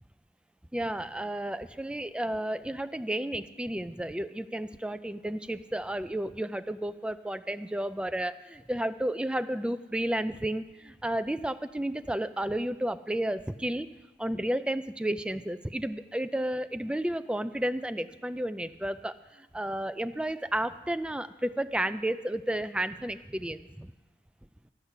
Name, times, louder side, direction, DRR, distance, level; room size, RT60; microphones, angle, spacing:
voice 1, 0.7-13.9 14.2-23.9, right 1 dB, 5° right, 11 dB, 0.3 m, -32 dB
12.5 x 5.8 x 8.2 m, 1.1 s
head